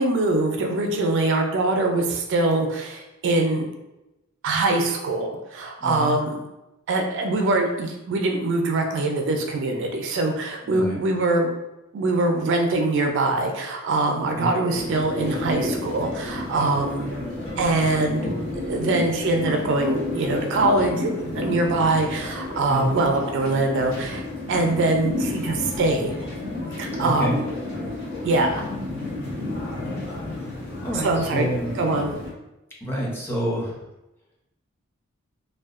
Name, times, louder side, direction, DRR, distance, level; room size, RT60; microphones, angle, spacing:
voice 1, 0.0-3.7 4.4-6.4 6.9-11.5 11.9-17.1 17.6-18.3 18.7-21.1 21.3-24.2 24.5-26.1 26.8-27.4 28.2-28.6 31.0-31.5 31.8-32.1, right 2 dB, 60° right, 3 dB, 0.4 m, -23 dB
voice 2, 5.8-6.1 10.7-11.0 14.1-14.5 22.7-23.0 27.0-27.4 30.8-31.7 32.8-33.8, equal, 10° left, -4 dB, 0.5 m, -28 dB
sound 1, 14.7-32.3, left 2 dB, 80° left, 1.0 m, -31 dB
2.7 x 2.2 x 2.4 m, 0.95 s
head